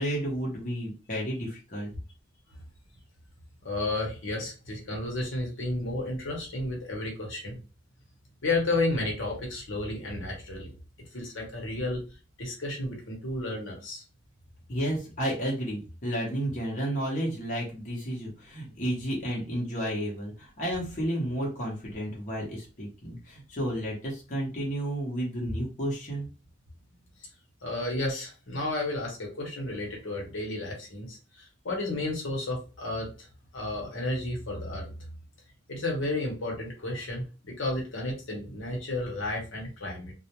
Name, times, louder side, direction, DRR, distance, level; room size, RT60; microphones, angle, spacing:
voice 1, 0.0-1.9 14.7-26.3, equal, 40° left, -4 dB, 0.8 m, -32 dB
voice 2, 3.6-7.6 8.4-10.7 11.1-12.0 12.4-14.0 27.6-33.3 33.5-34.9 35.7-40.1, left 2 dB, 70° left, -1 dB, 0.9 m, -32 dB
2.4 x 2.0 x 2.9 m, 0.33 s
head